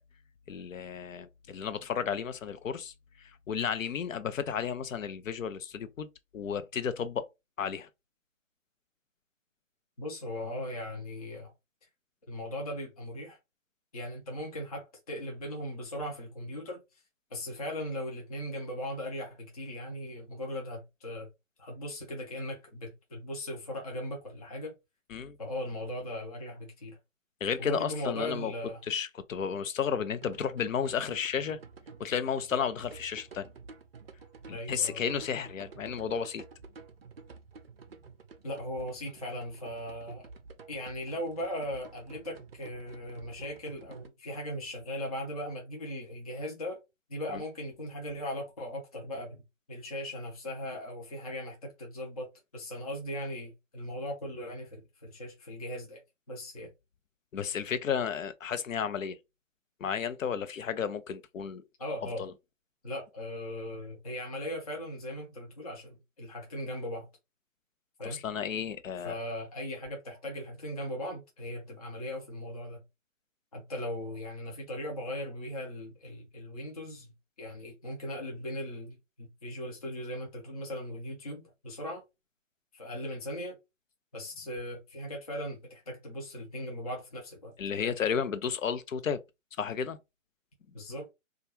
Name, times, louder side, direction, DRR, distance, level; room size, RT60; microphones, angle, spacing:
voice 1, 0.5-6.1 6.3-7.3 7.6-7.9 25.1-25.4 27.4-28.5 28.9-31.6 32.0-33.5 34.5-36.4 47.3-47.4 57.3-59.2 59.8-61.6 62.2-62.3 68.0-69.1 87.6-89.2 89.6-90.0, left 7 dB, 80° left, 0.5 m, -33 dB
voice 2, 10.0-11.5 12.3-13.4 13.9-17.0 17.3-21.3 21.6-24.7 25.4-27.0 27.6-28.8 34.5-35.0 38.4-40.3 40.7-46.8 47.1-49.4 49.7-52.3 52.5-56.0 56.3-56.7 61.8-62.2 62.8-67.1 68.0-68.2 69.0-72.8 73.5-82.0 82.7-83.6 84.1-87.5 87.8-87.9 90.7-91.1, left 1 dB, 30° left, 0.5 m, -38 dB
sound 1, 30.2-44.1, right 4 dB, 50° right, 0.4 m, -50 dB
2.3 x 2.2 x 3.0 m
figure-of-eight pair, 150°, 39 cm